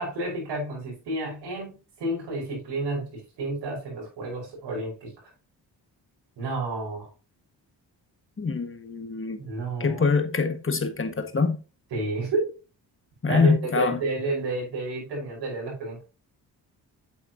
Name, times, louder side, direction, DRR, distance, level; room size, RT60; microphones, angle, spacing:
voice 1, 0.0-5.3 6.4-7.1 9.4-10.0 11.9-12.5 13.3-16.0, right 2 dB, 85° right, 5.1 m, -31 dB
voice 2, 8.4-9.4 9.8-11.6 13.2-14.0, left 5 dB, 30° left, 1.7 m, -24 dB
8.4 x 7.7 x 2.8 m
supercardioid pair, 55°, 42 cm